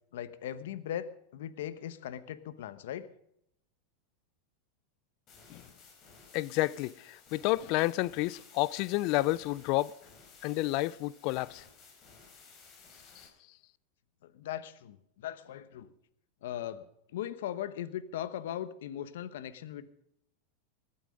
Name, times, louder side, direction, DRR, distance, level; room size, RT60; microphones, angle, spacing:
voice 1, 0.1-3.1 14.2-15.9 16.4-19.9, left 11 dB, 75° left, 1.1 m, -39 dB
sound 1, 5.3-13.3, left 5 dB, 40° left, 5.0 m, -56 dB
voice 2, 6.3-9.9 10.4-11.6 13.2-13.3, left 18 dB, 55° left, 0.5 m, -30 dB
19.5 x 11.5 x 5.3 m
hypercardioid pair, 120°, 0 cm